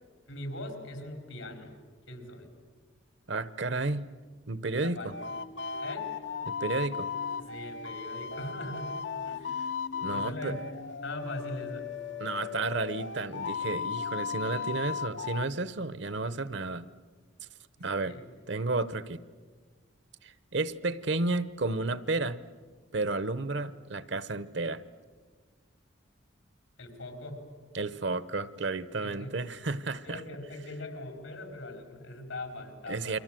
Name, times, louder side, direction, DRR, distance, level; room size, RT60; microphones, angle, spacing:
voice 1, 0.3-1.7 2.1-2.5 4.8-5.3 5.8-6.1 7.4-8.9 9.2-9.4 10.1-10.6 11.0-11.9 17.8-18.3 26.8-27.4 29.0-29.3 30.1-33.2, left 1 dB, 85° left, 5 dB, 4.6 m, -41 dB
voice 2, 3.3-4.1 4.5-5.2 6.5-7.1 10.0-10.5 12.2-16.9 17.8-18.2 18.5-19.2 20.2-22.4 22.9-24.8 27.7-30.2 32.9-33.2, right 3 dB, 60° right, 16 dB, 0.9 m, -32 dB
sound 1, 5.1-15.5, left 6 dB, 65° left, 0.7 m, -36 dB
30.0 x 23.5 x 7.6 m, 1.5 s
head